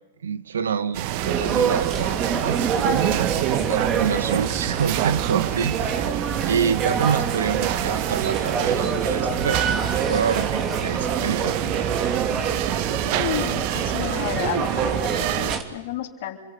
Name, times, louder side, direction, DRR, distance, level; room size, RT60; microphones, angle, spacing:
voice 1, 0.2-9.6 10.1-11.6, right 7 dB, 85° right, 13 dB, 1.3 m, -27 dB
sound 1, 0.9-15.6, right 14 dB, 50° right, 1.2 m, -27 dB
sound 2, 1.2-15.6, right 6 dB, 30° right, 2.9 m, -26 dB
voice 2, 13.1-16.4, left 12 dB, 60° left, 1 dB, 3.2 m, -31 dB
27.0 x 23.0 x 8.4 m, 1.1 s
hypercardioid pair, 110°, 0 cm